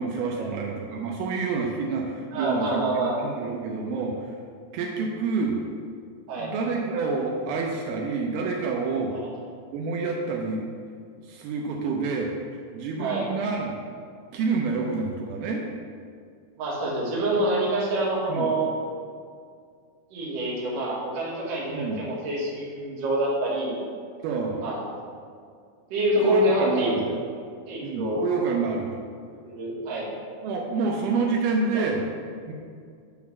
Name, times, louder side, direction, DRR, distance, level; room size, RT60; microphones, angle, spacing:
voice 1, 0.0-4.3 4.7-5.6 6.3-9.2 9.7-10.7 11.2-12.3 12.7-13.7 14.3-15.6 18.3-18.5 21.7-22.0 24.2-24.6 26.2-27.1 27.8-28.9 30.4-32.0 32.5-32.6, right 4 dB, 80° right, -1 dB, 2.5 m, -28 dB
voice 2, 2.3-3.2 6.3-6.5 9.1-9.3 13.0-13.3 16.6-18.7 20.1-23.8 24.6-24.8 25.9-27.2 27.7-28.2 29.4-30.1 31.6-31.9, right 1 dB, 55° right, -5 dB, 2.4 m, -26 dB
8.5 x 3.8 x 5.9 m, 2.2 s
omnidirectional pair, 4.4 m